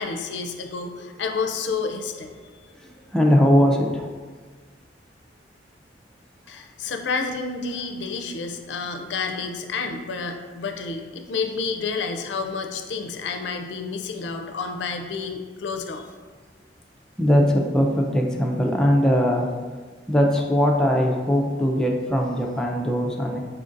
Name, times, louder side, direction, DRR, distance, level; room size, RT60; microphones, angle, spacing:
voice 1, 0.0-2.3 6.5-16.0, left 4 dB, 75° left, 5 dB, 0.4 m, -30 dB
voice 2, 2.8-4.2 17.2-19.5 20.1-23.4, equal, 5° left, -1 dB, 0.4 m, -20 dB
4.5 x 3.8 x 2.5 m, 1.4 s
head